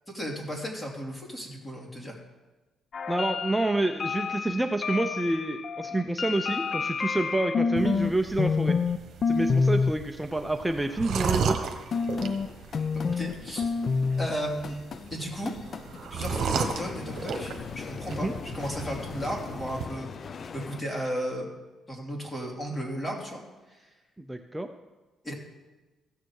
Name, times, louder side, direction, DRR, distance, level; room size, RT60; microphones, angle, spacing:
voice 1, 0.1-2.2 13.2-13.7 14.2-14.8 15.1-15.5 16.1-17.5 17.9-18.3 18.5-21.5 21.9-23.4 23.7-23.8 25.2-25.3, equal, 20° left, -1 dB, 3.0 m, -34 dB
sound 1, 2.9-8.1 8.4-9.0 9.2-9.9 11.9-20.8, left 5 dB, 50° left, 0.5 m, -30 dB
voice 2, 3.1-8.8 9.3-11.7 18.1-18.3 24.2-24.7, right 2 dB, 10° right, 5 dB, 0.6 m, -28 dB
sound 2, 7.8-19.8, right 6 dB, 65° right, 1.2 m, -35 dB
16.0 x 6.7 x 4.8 m, 1.2 s
cardioid pair, 90°, 0 cm